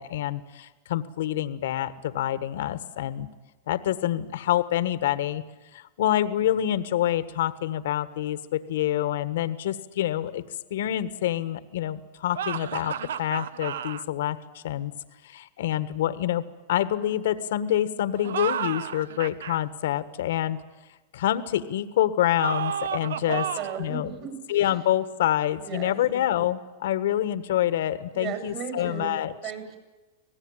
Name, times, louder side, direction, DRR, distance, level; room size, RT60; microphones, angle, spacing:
voice 1, 0.0-3.3 3.7-5.4 5.7-10.4 10.7-14.9 15.2-16.4 16.7-20.6 21.1-23.5 23.8-24.1 24.5-29.3, left 12 dB, 75° left, 13 dB, 1.3 m, -27 dB
sound 1, 12.3-14.0 18.2-19.6 22.4-23.9, right 8 dB, 85° right, 0.7 m, -32 dB
voice 2, 23.1-24.4 25.6-26.0 28.1-29.1 29.4-29.8, right 8 dB, 45° right, 6 dB, 7.7 m, -35 dB
25.5 x 18.0 x 8.9 m, 1.2 s
hypercardioid pair, 120°, 0 cm